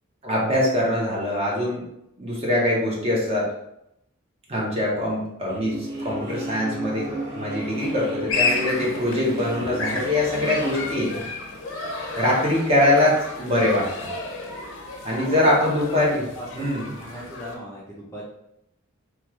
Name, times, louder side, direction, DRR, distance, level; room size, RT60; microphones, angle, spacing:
voice 1, 0.2-1.8 2.2-3.5 4.5-11.2 12.2-14.1 15.0-16.2 16.6-16.9, left 1 dB, 30° right, -4 dB, 0.9 m, -23 dB
sound 1, 5.5-10.9, right 1 dB, 55° right, 1.0 m, -33 dB
sound 2, 8.3-17.6, left 3 dB, 75° left, 0.6 m, -31 dB
voice 2, 15.2-18.2, equal, 15° left, -5 dB, 0.5 m, -38 dB
3.1 x 2.4 x 3.1 m, 0.81 s
head